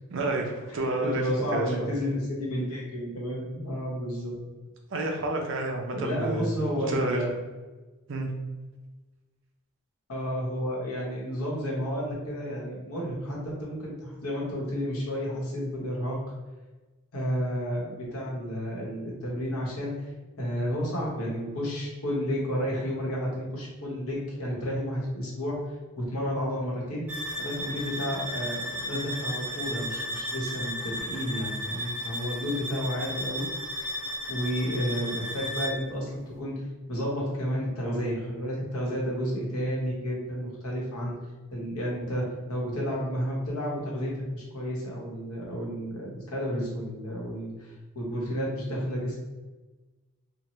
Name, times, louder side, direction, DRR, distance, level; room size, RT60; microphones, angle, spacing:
voice 1, 0.1-1.2 1.5-1.9 4.9-6.5 6.9-7.2 8.1-8.3, right 2 dB, 55° right, 1 dB, 0.5 m, -29 dB
voice 2, 0.7-4.3 5.9-7.3 10.1-16.2 17.1-20.1 20.4-25.6 26.0-27.0 27.4-33.5 34.3-36.1 36.4-36.5 36.9-41.1 41.5-49.2, equal, 90° left, -4 dB, 1.0 m, -31 dB
sound 1, 27.1-35.9, equal, 5° right, 0.5 m, -34 dB
2.8 x 2.1 x 3.0 m, 1.2 s
head